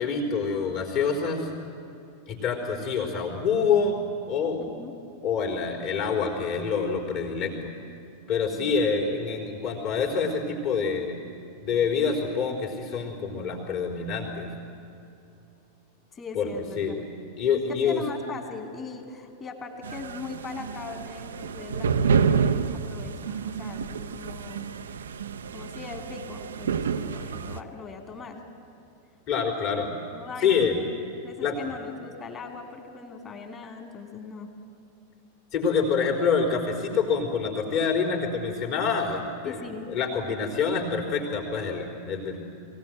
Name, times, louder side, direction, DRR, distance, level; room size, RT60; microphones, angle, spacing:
voice 1, 0.0-1.5 2.3-4.0 4.3-4.8 5.2-7.7 8.3-11.2 11.6-14.5 16.3-16.5 16.8-17.0 17.4-18.0 29.3-29.9 30.4-30.8 31.4-31.6 35.5-42.4, left 5 dB, 40° left, 0 dB, 4.0 m, -26 dB
voice 2, 4.6-4.9 8.6-8.8 16.1-17.1 17.8-24.8 25.5-28.4 30.1-30.9 31.2-34.5 39.4-39.9, left 5 dB, 25° left, 4 dB, 2.9 m, -40 dB
sound 1, 19.8-27.6, right 6 dB, 65° right, 0.7 m, -29 dB
22.0 x 17.5 x 9.3 m, 2.7 s
figure-of-eight pair, 90°, 0 cm